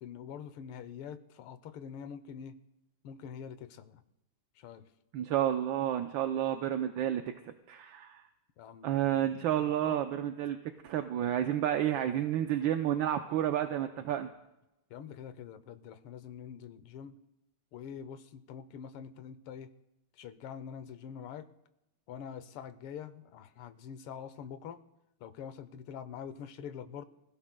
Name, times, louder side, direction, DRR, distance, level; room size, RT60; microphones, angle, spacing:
voice 1, 0.0-2.6 3.0-4.0 4.5-4.9 8.6-9.3 9.6-10.0 14.9-17.2 17.7-19.7 20.1-21.5 22.1-24.8 25.2-27.0, left 8 dB, 80° left, 12 dB, 1.7 m, -45 dB
voice 2, 5.1-8.2 8.8-10.6 10.8-14.3, right 11 dB, 70° right, 6 dB, 1.3 m, -30 dB
26.0 x 16.0 x 2.2 m, 0.91 s
omnidirectional pair, 2.4 m